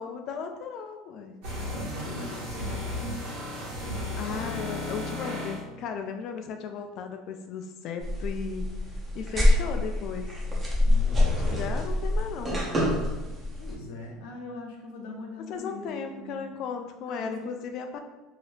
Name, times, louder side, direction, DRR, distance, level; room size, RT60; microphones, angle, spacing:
voice 1, 0.0-1.4 4.2-8.7 9.1-10.3 11.5-12.6 15.5-18.0, left 6 dB, 40° left, 5 dB, 0.3 m, -36 dB
sound 1, 1.4-5.6, left 1 dB, 60° right, 1.3 m, -34 dB
voice 2, 1.7-3.3 10.8-11.4 13.6-16.5 17.1-17.6, left 1 dB, 70° left, 1 dB, 0.6 m, -41 dB
sound 2, 8.0-13.7, left 1 dB, 15° right, 0.6 m, -26 dB
2.8 x 2.6 x 3.2 m, 1.1 s
cardioid pair, 175°, 0 cm